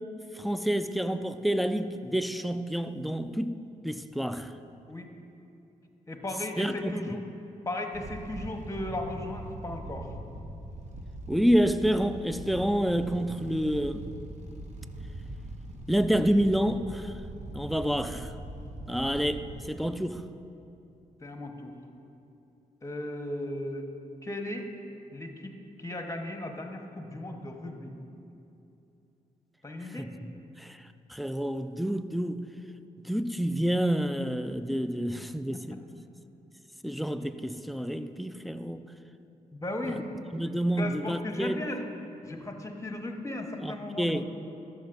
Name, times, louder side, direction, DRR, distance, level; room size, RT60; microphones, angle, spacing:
voice 1, 0.3-3.6 3.8-4.5 6.6-6.9 11.3-14.1 15.9-17.1 17.5-18.3 18.9-20.2 30.0-30.3 30.6-30.8 31.1-32.5 33.0-35.8 36.8-38.8 39.8-40.0 40.3-41.6 43.6-44.2, equal, ahead, 0.4 m, -28 dB
voice 2, 6.1-7.2 7.6-10.2 21.2-21.7 22.8-23.9 24.2-24.7 25.1-25.5 25.8-27.9 29.6-30.1 35.5-35.6 39.2-40.1 40.8-41.9 42.2-44.3, left 1 dB, 20° left, 1.1 m, -36 dB
sound 1, 7.9-19.6, right 1 dB, 45° right, 0.9 m, -42 dB
13.0 x 6.4 x 2.6 m
hypercardioid pair, 40°, 16 cm